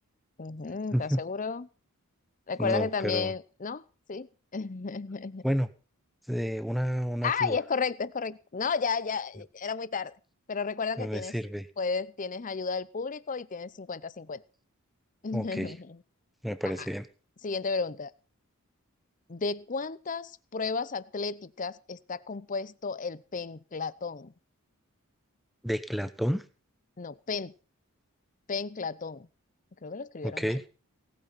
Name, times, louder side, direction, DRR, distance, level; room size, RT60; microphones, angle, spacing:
voice 1, 0.4-1.7 2.5-3.8 4.1-5.4 7.2-10.1 10.5-11.3 11.8-14.4 15.2-16.0 17.4-18.1 19.3-24.3 27.0-27.5 28.5-29.3 29.8-30.6, left 5 dB, 35° left, 18 dB, 0.6 m, -33 dB
voice 2, 0.9-1.2 2.6-3.3 5.4-5.7 6.3-7.6 11.0-11.7 15.3-15.7 16.4-17.1 25.6-26.4 30.2-30.6, equal, ahead, 13 dB, 0.9 m, -30 dB
18.0 x 8.9 x 5.8 m, 0.37 s
head